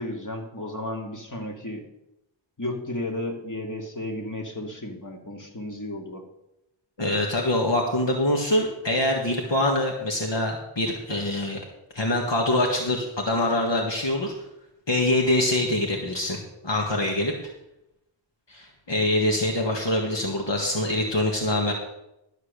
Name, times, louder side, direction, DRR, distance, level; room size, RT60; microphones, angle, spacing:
voice 1, 0.0-1.8 2.6-6.2, left 1 dB, 40° left, 1 dB, 2.3 m, -33 dB
voice 2, 7.0-11.6 11.9-14.3 14.9-17.3 18.5-21.7, left 1 dB, 65° left, 0 dB, 1.7 m, -24 dB
12.5 x 6.7 x 6.7 m, 0.87 s
wide cardioid pair, 40°, 47 cm